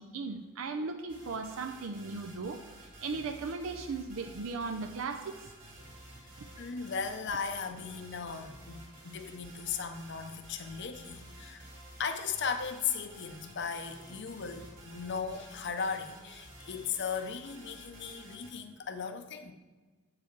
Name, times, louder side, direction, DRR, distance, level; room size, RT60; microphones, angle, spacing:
voice 1, 0.0-2.6 3.0-5.2, right 4 dB, 75° right, 5 dB, 0.5 m, -37 dB
sound 1, 1.1-18.5, right 1 dB, 40° right, 2.0 m, -52 dB
voice 2, 6.6-11.7 12.0-19.5, left 6 dB, 55° left, 8 dB, 0.6 m, -37 dB
8.3 x 4.9 x 4.5 m, 1.3 s
head